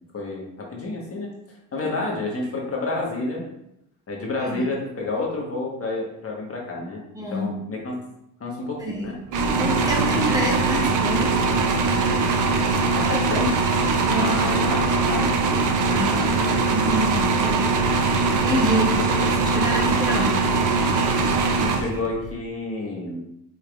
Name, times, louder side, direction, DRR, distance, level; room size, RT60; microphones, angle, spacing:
voice 1, 0.1-1.3 1.7-3.4 4.1-8.0 8.4-9.2 10.1-10.3 12.9-13.7 14.1-15.5 16.0-16.6 17.5-17.7 18.5-18.7 19.1-19.3 21.6-23.2, left 2 dB, 35° left, -2 dB, 1.3 m, -30 dB
voice 2, 7.1-7.5 8.8-9.1 9.6-11.3 14.1-14.3 15.9-16.2 16.7-17.6 18.1-20.5, right 1 dB, 10° right, -2 dB, 1.1 m, -27 dB
sound 1, 9.3-22.3, right 3 dB, 50° right, 0.6 m, -21 dB
5.2 x 4.1 x 2.5 m, 0.81 s
cardioid pair, 115°, 41 cm